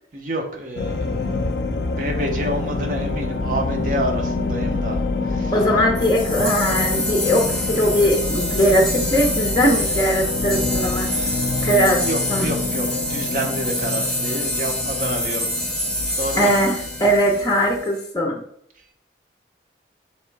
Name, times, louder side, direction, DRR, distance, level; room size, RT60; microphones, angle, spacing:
voice 1, 0.1-5.5 11.0-11.7 11.9-15.7 16.2-16.5, right 1 dB, 45° right, 3 dB, 0.6 m, -29 dB
sound 1, 0.8-17.8, left 3 dB, 65° left, 0.4 m, -27 dB
voice 2, 5.5-11.1 11.6-12.5 16.4-18.4, equal, 20° left, 0 dB, 0.6 m, -20 dB
sound 2, 5.9-18.0, equal, 5° left, 1.2 m, -27 dB
3.6 x 3.0 x 4.5 m, 0.69 s
head